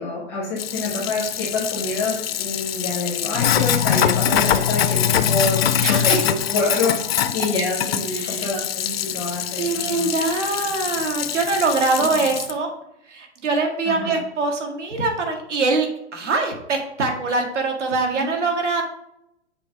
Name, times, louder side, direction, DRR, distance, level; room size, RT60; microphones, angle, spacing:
voice 1, 0.0-10.1 13.8-14.1 18.1-18.2, left 2 dB, 5° left, -3 dB, 0.5 m, -26 dB
Sink (filling or washing), 0.6-12.5, left 10 dB, 55° left, 0.5 m, -23 dB
voice 2, 5.8-6.3 8.1-8.5 9.6-12.7 13.0-18.8, right 3 dB, 80° right, 2 dB, 1.9 m, -23 dB
7.5 x 3.3 x 5.0 m, 0.78 s
hypercardioid pair, 175°, 35 cm